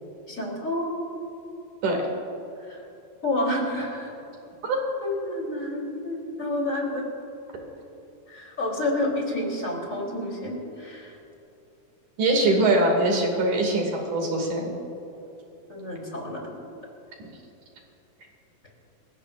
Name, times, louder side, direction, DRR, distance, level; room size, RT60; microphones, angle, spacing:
voice 1, 0.3-0.9 2.6-2.8 3.2-4.1 5.0-7.0 8.3-11.2 15.7-16.4, left 1 dB, 20° left, -2 dB, 3.8 m, -29 dB
voice 2, 12.2-14.7, right 2 dB, 60° right, 1 dB, 3.9 m, -22 dB
29.0 x 15.5 x 2.6 m, 2.9 s
omnidirectional pair, 4.0 m